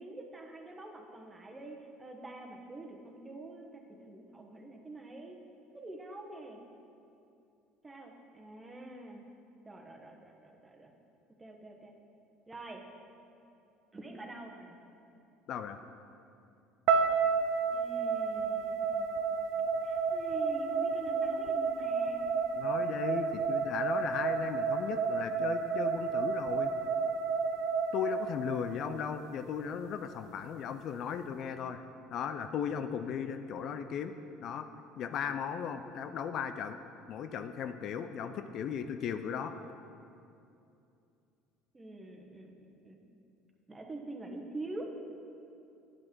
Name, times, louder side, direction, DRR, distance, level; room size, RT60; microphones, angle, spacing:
voice 1, 0.0-5.4 5.7-6.6 7.8-9.2 9.6-10.9 11.4-11.9 12.5-12.8 13.9-14.8 17.7-19.1 19.8-22.2 41.7-43.0 43.7-44.9, right 2 dB, 20° right, 2 dB, 1.3 m, -46 dB
voice 2, 15.5-15.8 22.6-26.7 27.9-31.8 32.1-34.1 34.4-34.7 35.0-36.8 37.1-39.5, left 7 dB, 55° left, 9 dB, 0.4 m, -36 dB
sound 1, 16.9-29.0, right 5 dB, 65° right, 0.5 m, -31 dB
10.0 x 5.9 x 4.5 m, 2.6 s
hypercardioid pair, 65°, 0 cm